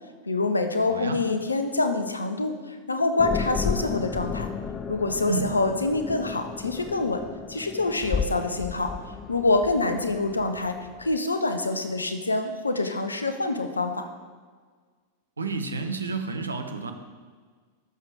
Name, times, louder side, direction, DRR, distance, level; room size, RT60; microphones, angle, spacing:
voice 1, 0.3-4.5 4.9-7.2 7.5-8.9 9.3-14.1, left 3 dB, 80° left, 8 dB, 0.8 m, -26 dB
voice 2, 0.8-1.2 5.3-5.5 15.4-16.9, right 4 dB, 75° right, 6 dB, 0.8 m, -30 dB
sound 1, 3.2-11.2, left 5 dB, 25° left, 0.4 m, -33 dB
13.5 x 6.4 x 3.5 m, 1.6 s
figure-of-eight pair, 90°, 0 cm